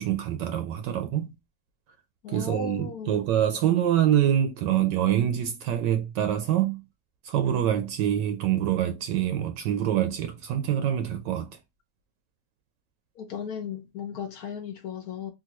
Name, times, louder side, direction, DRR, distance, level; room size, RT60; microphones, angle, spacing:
voice 1, 0.0-1.3 2.3-6.8 7.2-11.6, right 10 dB, 75° right, 1.2 m, -25 dB
voice 2, 2.2-3.2 13.2-15.3, left 8 dB, 65° left, 0.9 m, -36 dB
3.7 x 2.5 x 2.8 m
omnidirectional pair, 2.0 m